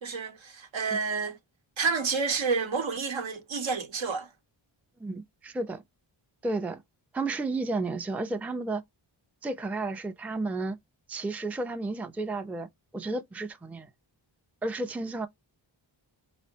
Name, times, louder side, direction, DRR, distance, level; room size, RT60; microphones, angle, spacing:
voice 1, 0.0-1.4 1.8-4.3, right 4 dB, 70° right, 0.9 m, -29 dB
voice 2, 5.0-5.8 6.4-6.8 7.1-8.8 9.4-10.8 11.1-12.7 12.9-13.9 14.6-15.3, right 2 dB, 5° right, 0.4 m, -32 dB
3.6 x 2.1 x 2.7 m
cardioid pair, 50°, 48 cm